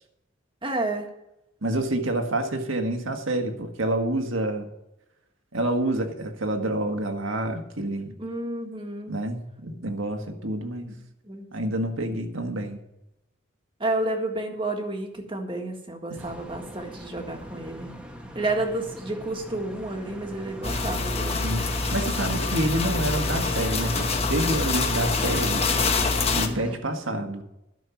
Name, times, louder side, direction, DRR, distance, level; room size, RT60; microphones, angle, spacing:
voice 1, 0.6-1.1 8.2-9.1 10.9-11.0 11.2-11.4 13.8-17.9 18.3-21.4, right 2 dB, 25° right, 3 dB, 1.7 m, -30 dB
voice 2, 1.6-4.7 5.5-8.2 9.1-10.9 11.5-12.8 16.1-16.2 21.4-25.7 26.3-27.4, right 1 dB, 80° right, 4 dB, 1.7 m, -28 dB
sound 1, 16.2-26.8, equal, 5° right, 1.2 m, -40 dB
sound 2, 20.6-26.5, left 3 dB, 30° left, 1.1 m, -25 dB
12.5 x 6.5 x 7.2 m, 0.88 s
head